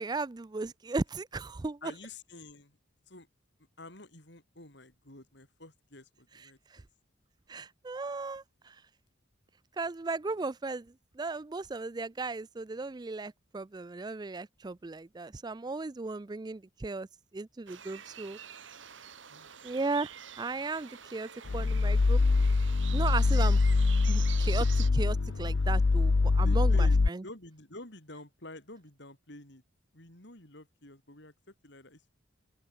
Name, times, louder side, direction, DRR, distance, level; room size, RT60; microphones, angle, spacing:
voice 1, 0.0-1.8 6.7-6.8 7.5-8.8 9.8-17.1 17.3-18.4 19.6-22.2 22.9-23.6 24.1-27.2, right 3 dB, 20° right, 0.4 m, -36 dB
voice 2, 1.8-2.8 3.1-3.3 3.8-6.9 19.3-19.7 26.4-29.6 29.9-32.1, left 2 dB, 60° left, 5.3 m, -49 dB
sound 1, 17.7-24.9, right 9 dB, 70° right, 2.1 m, -47 dB
sound 2, 21.4-27.1, left 3 dB, 85° left, 0.7 m, -24 dB
head